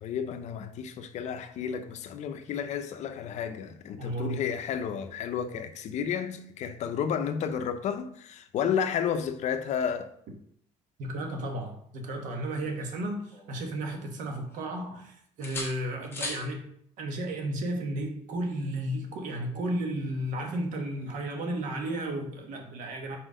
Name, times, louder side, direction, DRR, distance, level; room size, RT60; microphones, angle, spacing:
voice 1, 0.0-10.1, left 8 dB, 60° left, 0.6 m, -32 dB
voice 2, 4.0-4.4 11.0-16.6 17.0-23.2, right 1 dB, 70° right, 1.3 m, -33 dB
sound 1, 12.3-13.8 14.2-15.0 15.4-16.5 18.4-18.6, left 2 dB, 15° left, 1.4 m, -41 dB
4.4 x 4.3 x 5.0 m
cardioid pair, 110°, 14 cm